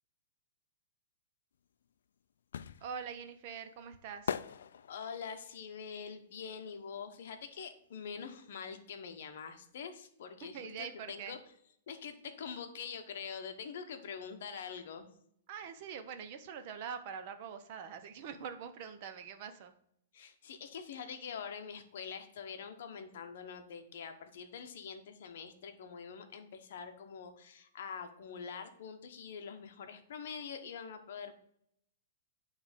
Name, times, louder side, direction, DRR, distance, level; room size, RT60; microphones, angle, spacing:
sound 1, 1.6-7.5 7.8-9.4 9.6-9.7, left 8 dB, 75° left, 0.3 m, -43 dB
voice 1, 2.8-4.4 10.4-11.4 15.5-19.7, right 7 dB, 35° right, 8 dB, 0.6 m, -44 dB
voice 2, 4.9-11.4 11.9-15.1 20.1-31.4, left 6 dB, 50° left, 7 dB, 0.9 m, -45 dB
8.6 x 3.2 x 5.1 m, 0.70 s
hypercardioid pair, 175°, 0 cm